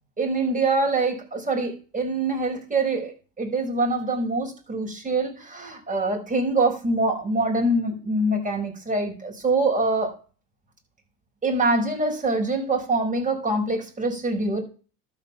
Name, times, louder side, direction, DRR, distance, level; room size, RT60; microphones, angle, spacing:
voice 1, 0.2-3.1 3.4-10.1 11.4-14.6, right 2 dB, 20° right, 1 dB, 5.5 m, -24 dB
12.5 x 5.6 x 7.2 m, 0.38 s
supercardioid pair, 85°, 42 cm